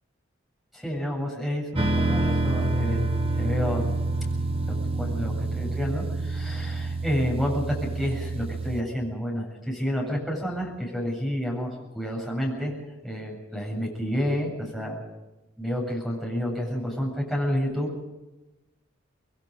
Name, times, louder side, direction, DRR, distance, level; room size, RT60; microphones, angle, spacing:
voice 1, 0.7-3.1 3.3-4.0 5.0-12.8 13.0-15.0 15.6-17.9, equal, ahead, -1 dB, 7.7 m, -29 dB
sound 1, 1.8-8.8, right 2 dB, 30° right, 1.0 m, -27 dB
27.0 x 21.0 x 5.3 m, 1.0 s
head